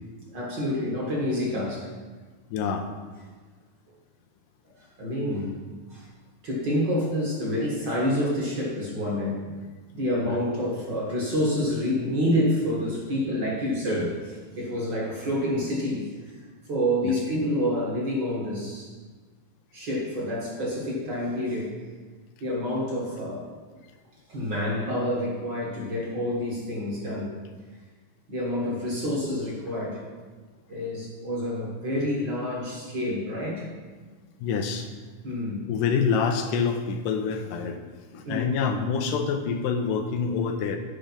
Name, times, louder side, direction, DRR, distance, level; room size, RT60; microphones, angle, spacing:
voice 1, 0.3-1.9 5.0-5.6 5.9-6.0 6.4-9.5 9.9-16.1 16.7-18.9 19.7-21.8 22.4-23.5 24.3-27.4 28.3-30.0 30.7-33.6 35.2-35.7 38.3-38.5, equal, 40° right, -4 dB, 1.8 m, -28 dB
voice 2, 2.5-2.9 10.3-10.4 34.4-34.9 35.7-37.8 38.1-40.8, left 6 dB, 90° left, 5 dB, 2.3 m, -26 dB
9.2 x 5.1 x 5.6 m, 1.4 s
omnidirectional pair, 3.8 m